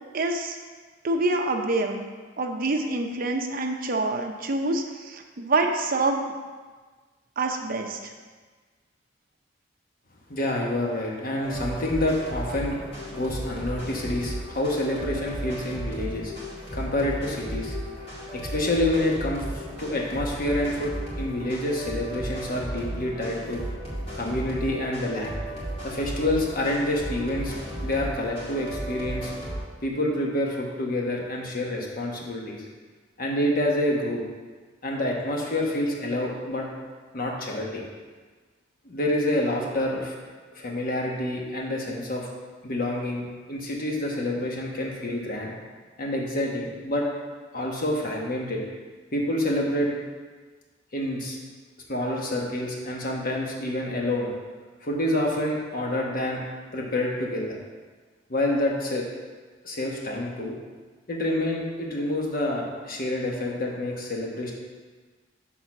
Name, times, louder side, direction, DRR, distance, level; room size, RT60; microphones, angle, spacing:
voice 1, 0.1-0.6 1.0-2.1 2.4-6.3 7.4-8.1, right 2 dB, 50° right, 3 dB, 0.7 m, -26 dB
voice 2, 10.3-12.8 13.1-16.3 16.7-17.8 18.3-23.6 24.1-25.4 25.8-27.5 27.8-29.3 29.8-32.6 33.2-34.2 34.8-36.7 37.1-37.8 38.8-40.1 40.5-42.3 42.6-45.5 46.0-47.1 47.5-48.6 49.1-49.9 50.9-51.4 51.9-54.3 54.8-56.4 56.7-57.6 58.3-59.1 59.6-60.6 61.1-64.5, left 1 dB, 50° left, -1 dB, 1.2 m, -27 dB
sound 1, 11.4-29.6, right 1 dB, 35° left, 2.0 m, -35 dB
6.1 x 4.0 x 5.9 m, 1.4 s
head